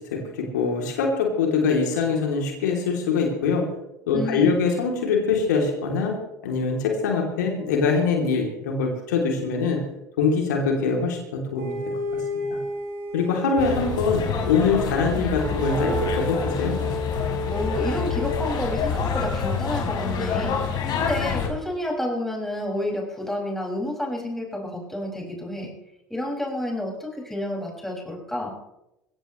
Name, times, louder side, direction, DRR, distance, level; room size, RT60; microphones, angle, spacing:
voice 1, 0.0-3.6 4.1-6.1 6.4-9.8 10.2-11.7 12.3-12.6 13.1-16.8, left 5 dB, 70° left, 1 dB, 3.2 m, -23 dB
voice 2, 4.1-4.6 17.5-20.6 20.9-25.7 26.1-28.5, left 1 dB, 5° left, -2 dB, 6.1 m, -30 dB
sound 1, 11.6-14.2 15.4-18.7, left 1 dB, 65° right, 6.5 m, -31 dB
sound 2, 13.6-21.5, left 5 dB, 45° left, 4.1 m, -27 dB
22.5 x 16.5 x 3.2 m, 0.90 s
figure-of-eight pair, 70°, 10 cm